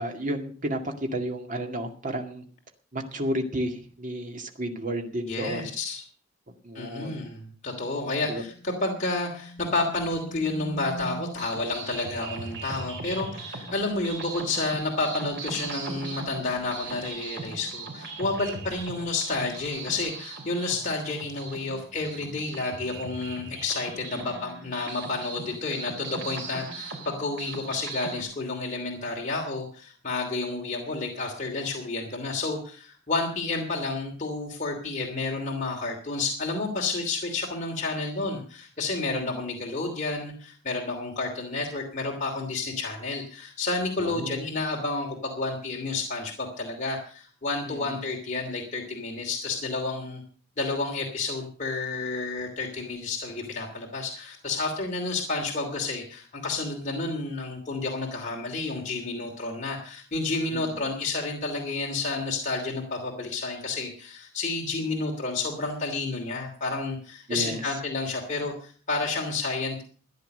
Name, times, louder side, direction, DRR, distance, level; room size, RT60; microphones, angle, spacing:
voice 1, 0.0-2.4 2.9-5.7 6.6-7.2 8.2-8.4 24.1-24.4 39.1-39.3 44.0-44.4 47.7-48.0 60.5-60.8 67.3-67.7, right 1 dB, 40° right, 5 dB, 2.1 m, -32 dB
voice 2, 5.3-6.0 6.7-50.2 50.6-69.8, left 3 dB, 40° left, -1 dB, 2.9 m, -30 dB
sound 1, 7.8-11.6, left 1 dB, 5° left, 1.1 m, -43 dB
sound 2, 11.0-28.2, right 3 dB, 65° right, 3.5 m, -39 dB
14.5 x 10.0 x 6.6 m, 0.43 s
head